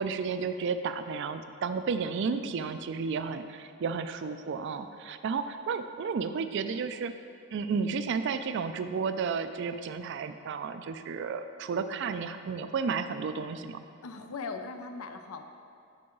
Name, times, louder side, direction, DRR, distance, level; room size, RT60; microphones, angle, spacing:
voice 1, 0.0-7.1 7.5-13.8, right 5 dB, 55° right, 10 dB, 0.3 m, -32 dB
voice 2, 14.0-15.4, left 4 dB, 80° left, 7 dB, 0.5 m, -39 dB
7.8 x 5.6 x 3.8 m, 2.4 s
head